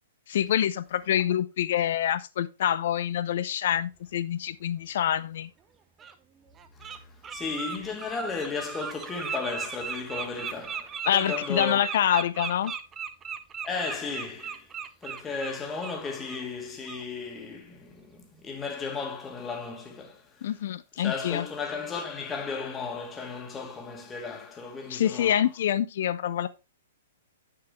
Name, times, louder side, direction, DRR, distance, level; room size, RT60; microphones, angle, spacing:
voice 1, 0.3-5.5 11.1-12.7 20.4-21.5 24.9-26.5, left 10 dB, 55° left, 0.6 m, -26 dB
Bird, 5.2-5.3 6.0-6.1 6.6-7.0 7.2-16.0 16.3-16.5 16.8-17.0, right 7 dB, 20° right, 0.8 m, -37 dB
voice 2, 6.7-11.8 13.6-14.7 15.0-20.5 21.0-25.5, left 4 dB, 15° left, 1.7 m, -35 dB
8.8 x 6.8 x 3.1 m
figure-of-eight pair, 115°, 0 cm